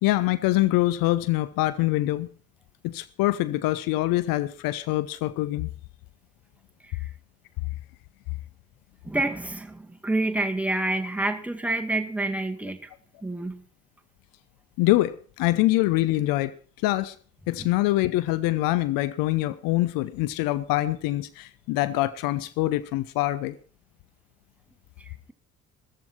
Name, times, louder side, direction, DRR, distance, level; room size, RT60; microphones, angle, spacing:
voice 1, 0.0-2.3 2.8-5.7 14.8-16.5 16.8-17.1 17.5-23.5, left 17 dB, 60° left, 0.8 m, -24 dB
voice 2, 9.0-12.9 13.2-13.6 17.6-17.7, right 2 dB, 5° right, 2.1 m, -28 dB
14.5 x 14.0 x 4.5 m
figure-of-eight pair, 50°, 38 cm